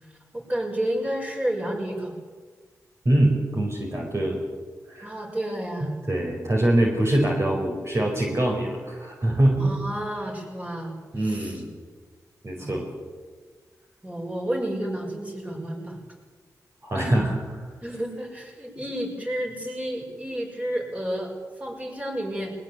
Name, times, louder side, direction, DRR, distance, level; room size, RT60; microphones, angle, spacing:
voice 1, 0.3-2.1 5.0-5.9 9.6-11.6 12.6-12.8 14.0-16.0 16.9-17.2 17.8-21.3 21.6-22.5, right 1 dB, 20° right, 1 dB, 6.6 m, -31 dB
voice 2, 3.0-4.4 4.9-5.1 5.8-9.7 11.1-11.7 12.4-12.9 16.8-17.3, right 1 dB, 45° right, 0 dB, 4.9 m, -23 dB
21.0 x 20.5 x 8.5 m, 1.4 s
cardioid pair, 60°, 7 cm